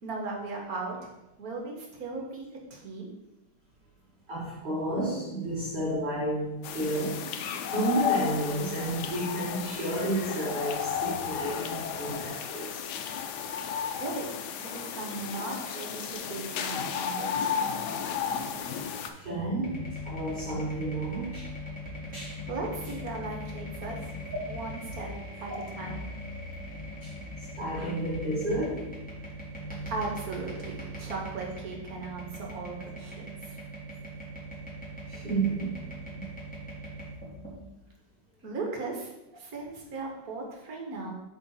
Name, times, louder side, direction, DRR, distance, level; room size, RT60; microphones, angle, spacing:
voice 1, 0.0-1.1 1.4-3.1 14.0-14.3 14.6-17.7 22.5-24.0 24.5-25.1 25.4-26.0 29.9-33.6 38.4-41.1, right 3 dB, 55° right, 0 dB, 1.7 m, -37 dB
voice 2, 4.3-7.2 7.6-12.8 13.6-13.7 18.3-18.6 19.2-19.8 20.0-21.5 22.1-22.4 27.0-27.1 27.6-28.8 35.1-35.8 36.2-36.3, right 1 dB, 30° right, -8 dB, 1.6 m, -31 dB
sound 1, 6.6-19.1, left 8 dB, 75° left, 1.1 m, -33 dB
sound 2, 19.6-37.6, equal, 5° left, 2.0 m, -40 dB
7.8 x 3.7 x 4.2 m, 0.96 s
omnidirectional pair, 1.9 m